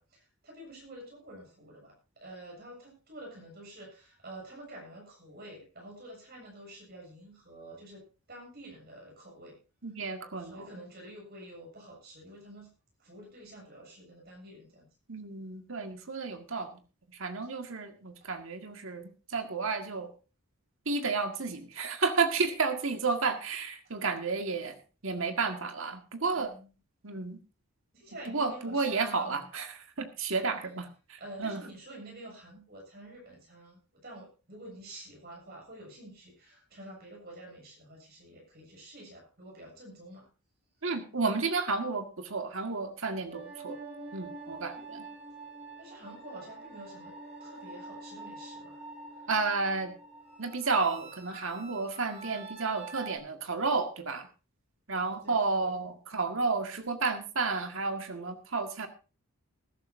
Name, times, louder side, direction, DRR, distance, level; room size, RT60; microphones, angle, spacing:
voice 1, 0.0-1.9 2.2-9.6 10.4-12.7 13.0-14.9 26.4-26.7 27.9-29.5 30.4-30.5 31.2-40.3 45.8-47.2 47.4-48.8 55.0-55.7, right 1 dB, 45° right, -1 dB, 7.3 m, -48 dB
voice 2, 9.8-10.7 15.1-16.7 17.2-20.1 20.9-24.8 25.0-26.5 27.0-27.4 28.3-31.6 40.8-43.8 44.1-45.0 49.3-49.9 50.4-54.3 54.9-58.9, right 4 dB, 60° right, 6 dB, 1.8 m, -32 dB
sound 1, 43.3-53.2, right 3 dB, 30° right, 5.9 m, -46 dB
20.5 x 12.0 x 2.7 m, 0.33 s
head